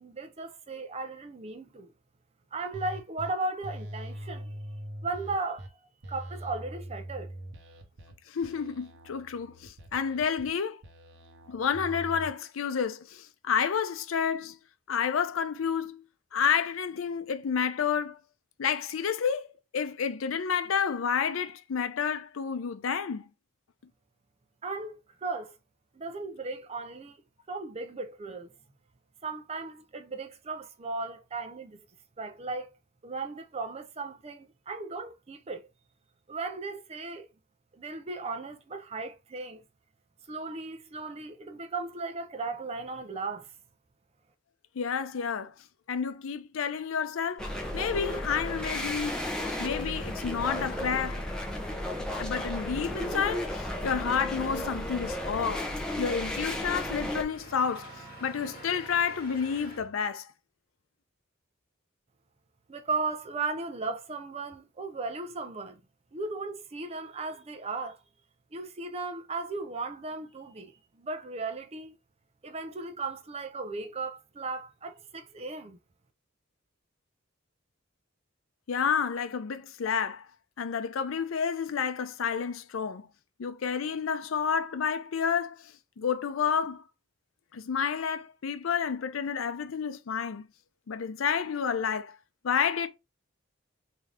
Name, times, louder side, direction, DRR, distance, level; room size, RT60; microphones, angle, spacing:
voice 1, 0.0-1.9 2.5-4.6 5.0-5.7 6.1-7.3 24.6-25.6 25.9-27.2 27.5-28.5 29.2-31.9 32.2-32.7 33.0-35.7 36.3-37.3 37.7-39.6 40.3-43.5 62.7-65.8 66.1-68.0 68.5-72.0 72.4-75.8, right 3 dB, 30° right, 0.5 m, -36 dB
sound 1, 2.7-3.3 3.6-5.7 6.0-8.1 8.4-10.5 10.8-12.3, right 1 dB, 60° right, 0.9 m, -42 dB
voice 2, 8.3-10.8 11.5-14.6 14.9-16.0 16.3-18.2 18.6-23.3 44.8-45.5 45.9-47.4 47.7-49.2 49.6-51.2 52.2-55.7 56.0-57.9 58.2-60.3 78.7-80.3 80.6-83.1 83.4-86.8 87.5-90.5 90.9-92.2 92.4-92.9, left 7 dB, 90° left, 0.5 m, -30 dB
sound 2, 47.4-57.2, left 1 dB, 5° left, 0.8 m, -34 dB
Engine, 48.4-59.9, equal, 30° left, 2.2 m, -50 dB
3.7 x 2.7 x 3.3 m
head